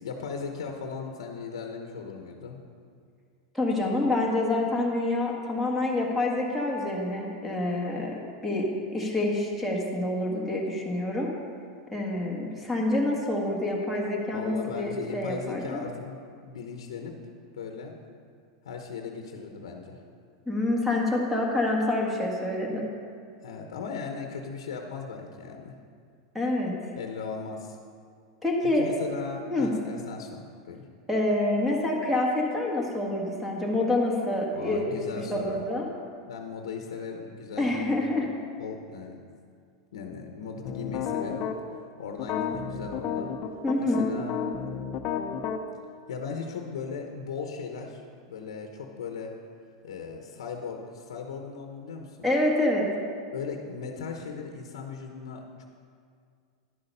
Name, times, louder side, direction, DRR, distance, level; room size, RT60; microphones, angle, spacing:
voice 1, 0.0-2.6 14.3-17.1 17.5-17.9 18.6-20.0 23.4-25.8 27.0-27.8 28.6-30.8 34.5-35.6 36.2-38.3 38.6-39.2 39.9-43.3 43.8-44.4 46.1-48.0 48.3-49.3 49.8-52.2 53.3-55.7, left 5 dB, 90° left, 3 dB, 0.9 m, -37 dB
voice 2, 3.5-8.1 8.4-11.3 11.9-15.8 20.5-22.9 26.3-26.7 28.4-28.8 29.5-29.7 31.1-35.9 37.6-38.3 43.6-44.1 52.2-52.8, left 2 dB, ahead, -2 dB, 1.6 m, -27 dB
sound 1, 40.6-41.6 42.2-45.6, left 7 dB, 45° left, 0.8 m, -31 dB
11.0 x 6.7 x 5.5 m, 2.2 s
supercardioid pair, 130°, 3 cm